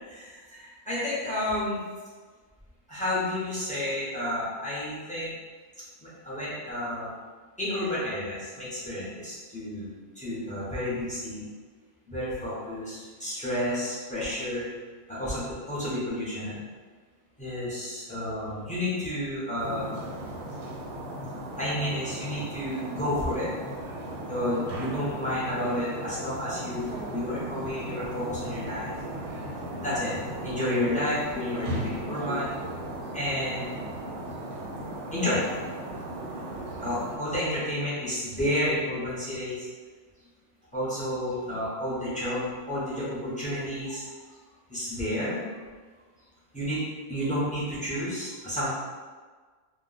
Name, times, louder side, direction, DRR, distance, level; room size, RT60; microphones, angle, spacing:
voice 1, 0.1-1.8 2.9-5.3 6.0-7.1 7.6-11.5 12.1-14.7 15.1-16.6 17.4-19.9 21.6-23.5 24.3-28.9 29.8-30.1 30.4-32.5 33.1-33.7 35.1-35.4 36.8-39.7 40.7-44.2 44.7-45.4 46.5-46.8 47.1-48.7, left 1 dB, 10° left, -10 dB, 0.3 m, -31 dB
sound 1, 19.6-37.2, right 1 dB, 85° right, 1.1 m, -36 dB
2.4 x 2.2 x 3.8 m, 1.4 s
omnidirectional pair, 1.7 m